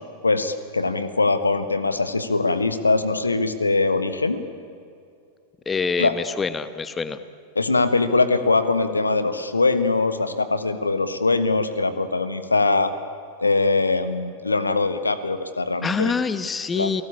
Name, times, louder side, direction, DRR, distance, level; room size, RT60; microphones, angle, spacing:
voice 1, 0.2-4.4 6.0-6.1 7.5-12.9 13.4-16.1 16.7-16.9, left 3 dB, 80° left, 12 dB, 1.4 m, -22 dB
voice 2, 5.7-7.2 15.8-17.0, left 5 dB, 15° left, 13 dB, 1.1 m, -25 dB
30.0 x 18.5 x 8.6 m, 2.4 s
figure-of-eight pair, 90°, 0 cm